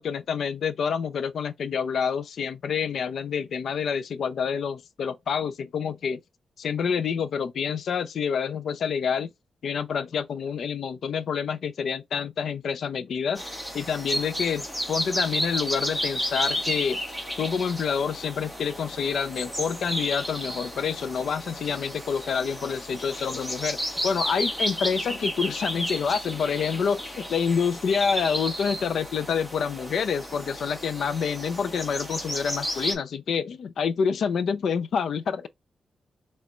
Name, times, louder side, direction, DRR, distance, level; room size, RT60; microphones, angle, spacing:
voice 1, 0.0-6.2 6.6-9.3 9.6-13.4 13.7-17.0 17.4-23.8 24.0-35.5, left 6 dB, 65° left, 0.4 m, -27 dB
sound 1, 13.4-32.9, equal, 5° left, 1.2 m, -32 dB
4.3 x 3.1 x 2.3 m
wide cardioid pair, 150°, 0 cm